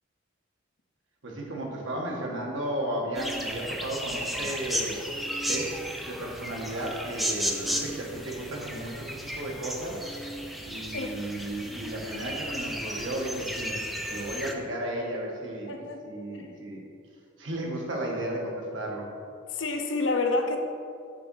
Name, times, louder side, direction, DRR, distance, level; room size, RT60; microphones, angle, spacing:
voice 1, 1.2-5.0 5.5-5.7 6.0-10.0 10.7-13.8 14.1-16.8 17.4-19.1, right 1 dB, 80° right, -2 dB, 1.5 m, -34 dB
sound 1, 3.1-14.5, equal, ahead, 0.4 m, -34 dB
voice 2, 15.7-16.0 19.5-20.6, left 3 dB, 75° left, 4 dB, 0.7 m, -28 dB
6.7 x 3.9 x 6.2 m, 2.4 s
head